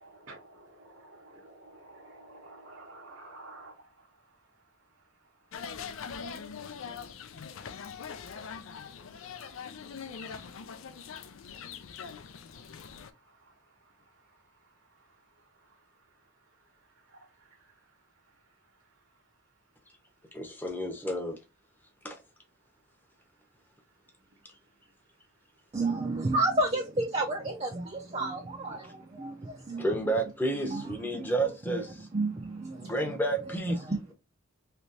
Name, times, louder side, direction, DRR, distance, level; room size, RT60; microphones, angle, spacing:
voice 1, 0.0-3.7, right 2 dB, 70° right, 0.9 m, -50 dB
sound 1, 5.5-13.1, left 6 dB, 75° left, 0.4 m, -42 dB
voice 2, 20.3-21.4 22.0-22.2 28.8-28.9 29.8-32.1 32.8-33.8, right 1 dB, 10° left, 0.7 m, -31 dB
voice 3, 25.7-29.8 30.6-31.3 31.7-31.8 32.1-33.2 33.6-34.1, right 2 dB, 30° right, 0.5 m, -31 dB
3.3 x 2.9 x 2.8 m
head